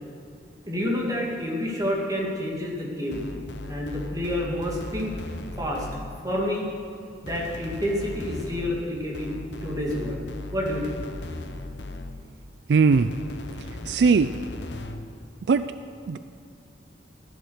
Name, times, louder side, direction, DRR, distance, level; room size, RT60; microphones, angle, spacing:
voice 1, 0.7-3.2 3.7-5.1 5.6-5.9 6.2-6.7 7.2-10.2 10.5-11.0, left 1 dB, 20° right, -2 dB, 2.3 m, -28 dB
sound 1, 3.1-6.4 7.3-12.4 12.9-15.1, left 2 dB, 85° left, 1.0 m, -38 dB
voice 2, 12.7-13.1 13.8-14.3 15.5-15.7 16.1-16.2, right 5 dB, 70° right, 12 dB, 0.4 m, -19 dB
14.5 x 11.0 x 6.5 m, 2.4 s
head